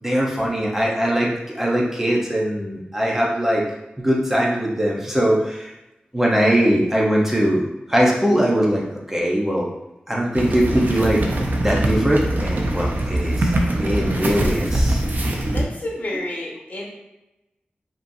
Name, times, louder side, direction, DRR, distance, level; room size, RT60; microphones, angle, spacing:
voice 1, 0.0-3.7 4.0-5.7 6.1-9.6 10.1-11.2 11.6-13.5 13.8-15.0, equal, 10° right, -3 dB, 1.0 m, -21 dB
sound 1, 10.3-15.6, right 1 dB, 60° right, 0.7 m, -22 dB
voice 2, 15.5-16.9, left 1 dB, 45° left, -4 dB, 1.4 m, -30 dB
5.1 x 3.1 x 2.7 m, 0.95 s
wide cardioid pair, 75°, 3 cm